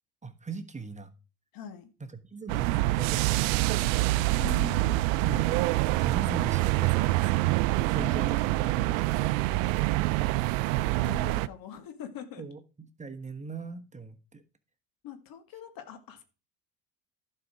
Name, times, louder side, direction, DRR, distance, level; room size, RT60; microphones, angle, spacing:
voice 1, 0.2-1.1 2.0-4.3 5.2-5.6 6.0-7.6 7.9-10.1 12.4-14.4, right 4 dB, 20° right, 1.3 m, -40 dB
voice 2, 1.5-1.9 4.4-5.1 8.0-8.6 10.7-12.4 15.0-16.2, left 9 dB, 60° left, 1.8 m, -42 dB
sound 1, 2.5-11.5, right 19 dB, 80° right, 0.5 m, -26 dB
11.5 x 5.6 x 4.9 m
hypercardioid pair, 70°, 39 cm